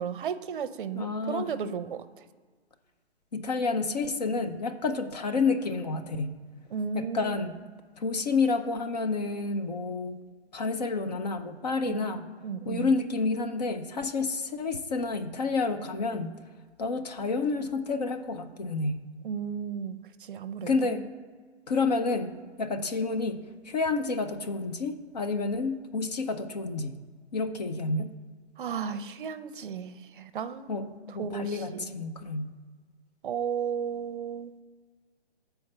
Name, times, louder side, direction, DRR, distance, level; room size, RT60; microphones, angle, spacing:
voice 1, 0.0-2.0 6.7-7.4 11.9-12.0 12.4-12.9 19.2-20.0 20.3-20.9 28.6-30.7 31.2-31.8 33.2-34.5, right 7 dB, 50° right, 11 dB, 0.6 m, -34 dB
voice 2, 0.9-1.5 3.3-6.3 6.9-7.6 8.0-10.2 10.5-12.3 12.7-16.3 16.8-19.0 20.7-21.1 21.7-26.9 27.3-28.1 30.7-32.5, left 3 dB, 40° left, 8 dB, 0.6 m, -29 dB
7.1 x 4.5 x 6.5 m, 1.5 s
hypercardioid pair, 160°, 33 cm